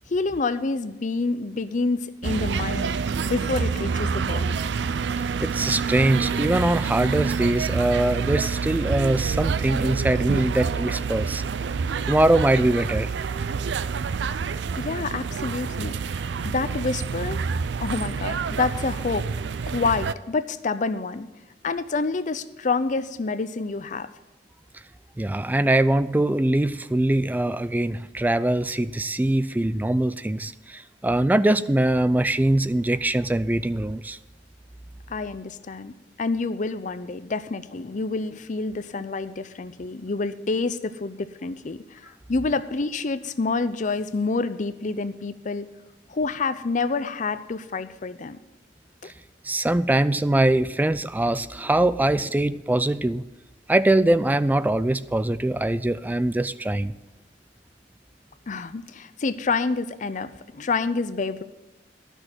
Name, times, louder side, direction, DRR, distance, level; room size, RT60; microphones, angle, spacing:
voice 1, 0.1-4.6 14.8-17.4 17.8-19.3 19.7-21.3 21.6-24.1 35.1-35.9 36.2-45.7 46.1-48.4 49.0-49.1 58.5-61.4, left 3 dB, 45° left, 12 dB, 0.6 m, -28 dB
sound 1, 2.2-20.1, right 5 dB, 80° right, 0.4 m, -27 dB
voice 2, 5.4-11.4 12.1-13.1 25.2-34.2 49.0-49.1 49.4-53.2 53.7-56.9, right 1 dB, 10° right, 15 dB, 0.3 m, -22 dB
11.5 x 6.3 x 7.7 m, 1.1 s
head